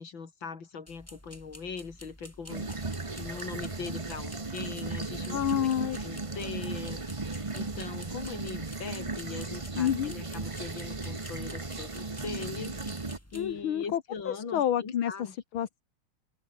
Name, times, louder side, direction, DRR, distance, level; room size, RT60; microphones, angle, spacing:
voice 1, 0.0-5.6 6.0-7.2 7.5-12.7 13.3-15.4, left 5 dB, 65° left, 3.6 m, -41 dB
sound 1, 0.9-13.5, equal, 5° left, 6.7 m, -51 dB
sound 2, 2.5-13.2, right 3 dB, 20° right, 1.1 m, -36 dB
voice 2, 5.3-6.0 9.7-10.1 13.3-14.0 14.3-15.8, left 10 dB, 85° left, 2.2 m, -29 dB
omnidirectional pair, 2.2 m